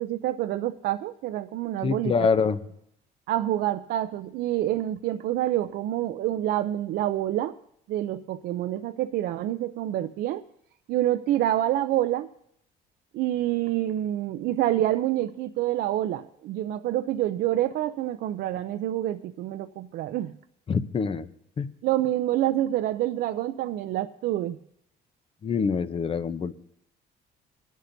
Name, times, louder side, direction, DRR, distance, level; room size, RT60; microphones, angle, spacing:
voice 1, 0.0-2.3 3.3-7.5 7.9-10.4 10.9-12.3 13.1-20.3 21.8-24.6, right 13 dB, 70° right, 7 dB, 0.5 m, -27 dB
voice 2, 1.8-2.6 20.7-21.3 21.6-21.7 25.4-26.5, left 5 dB, 35° left, 13 dB, 0.7 m, -25 dB
23.0 x 11.0 x 2.7 m, 0.74 s
cardioid pair, 110°, 17 cm